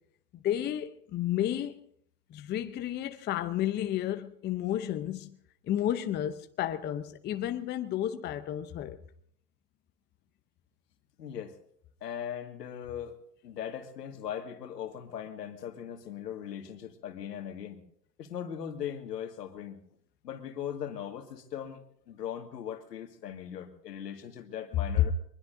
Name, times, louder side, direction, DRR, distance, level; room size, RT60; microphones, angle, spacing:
voice 1, 0.3-1.8 2.3-5.4 5.6-9.0, left 11 dB, 20° left, 0.7 m, -32 dB
voice 2, 11.2-11.6 12.0-13.2 13.4-17.8 18.2-19.8 20.2-25.1, left 9 dB, 80° left, 2.1 m, -39 dB
23.5 x 20.5 x 2.7 m
hypercardioid pair, 110°, 48 cm